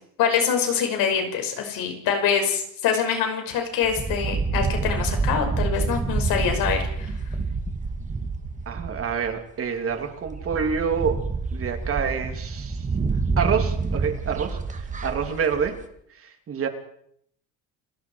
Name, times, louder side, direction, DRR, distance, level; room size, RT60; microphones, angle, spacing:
voice 1, 0.2-7.1, left 7 dB, 80° left, 4 dB, 6.0 m, -25 dB
sound 1, 3.8-9.4 9.9-10.0 10.3-15.8, right 4 dB, 20° right, 2.3 m, -28 dB
voice 2, 8.7-11.2 11.5-12.9 13.4-15.8 16.1-16.7, right 6 dB, 40° right, 5 dB, 3.1 m, -27 dB
29.5 x 18.5 x 4.8 m, 0.69 s
cardioid pair, 140°, 34 cm